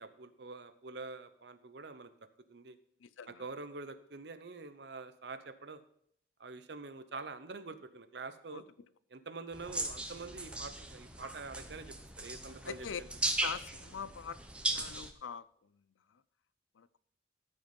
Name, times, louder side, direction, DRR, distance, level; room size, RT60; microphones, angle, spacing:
voice 1, 0.0-2.1 2.5-2.8 3.3-5.8 6.4-8.6 9.1-13.1, right 3 dB, 60° right, 11 dB, 0.8 m, -46 dB
voice 2, 3.0-3.4 8.5-8.6 12.6-13.0 13.4-14.4 14.7-15.5 15.7-15.8 16.1-16.2 16.8-17.0, left 6 dB, 90° left, 17 dB, 0.5 m, -43 dB
sound 1, 9.5-15.1, right 2 dB, 5° right, 0.8 m, -38 dB
13.5 x 5.4 x 5.3 m, 0.68 s
head